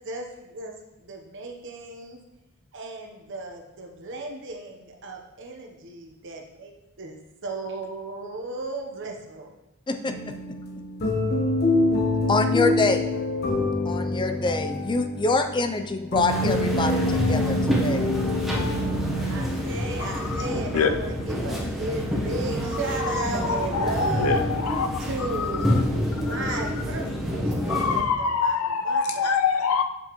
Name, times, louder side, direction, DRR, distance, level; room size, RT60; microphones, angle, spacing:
voice 1, 0.1-0.7 1.0-2.2 2.7-6.7 7.0-9.5 19.3-24.5 25.0-25.9 26.1-29.3, right 2 dB, 55° right, 2 dB, 1.0 m, -35 dB
voice 2, 9.9-10.3 12.3-13.1 13.8-18.0, left 3 dB, 20° left, 6 dB, 0.4 m, -25 dB
Mysterious Piano Music Loop, 10.1-19.4, left 2 dB, 45° left, 1.1 m, -26 dB
sound 1, 16.3-28.0, equal, ahead, 1.0 m, -28 dB
voice 3, 23.5-24.9 25.4-25.5 26.3-26.4 27.7-29.8, left 5 dB, 75° left, 7 dB, 0.6 m, -25 dB
7.7 x 5.6 x 3.1 m, 0.94 s
head